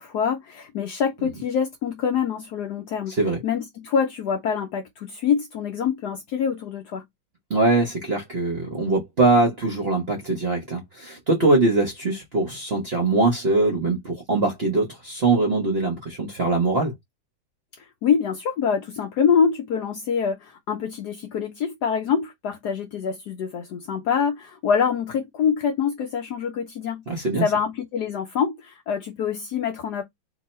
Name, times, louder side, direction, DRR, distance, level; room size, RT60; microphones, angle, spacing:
voice 1, 0.0-3.2 3.4-7.0 17.8-30.0, left 7 dB, 70° left, 1.0 m, -25 dB
voice 2, 7.5-16.9 27.1-27.4, right 3 dB, 50° right, 0.7 m, -22 dB
2.9 x 2.7 x 4.2 m
omnidirectional pair, 2.3 m